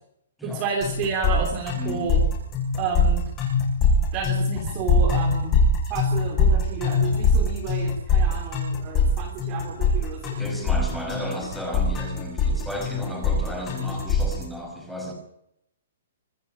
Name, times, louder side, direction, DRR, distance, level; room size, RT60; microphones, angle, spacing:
voice 1, 0.4-2.2 2.8-3.3 4.1-5.5 5.9-10.4, right 5 dB, 20° right, 0 dB, 3.3 m, -31 dB
sound 1, 0.8-14.4, left 3 dB, 15° left, 6.8 m, -22 dB
voice 2, 1.7-2.1 10.4-15.1, equal, ahead, 1 dB, 5.3 m, -33 dB
25.5 x 13.0 x 8.7 m, 0.76 s
hypercardioid pair, 175°, 0 cm